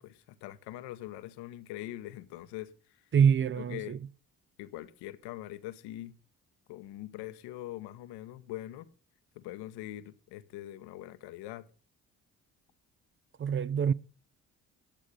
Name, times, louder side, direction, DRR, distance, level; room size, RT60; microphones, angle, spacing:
voice 1, 0.0-3.0 3.6-4.0 4.6-6.1 6.7-8.9 9.3-11.7, left 14 dB, 65° left, 1.0 m, -43 dB
voice 2, 3.1-4.0 13.4-13.9, right 7 dB, 30° right, 0.5 m, -25 dB
10.5 x 8.5 x 6.4 m
figure-of-eight pair, 45°, 43 cm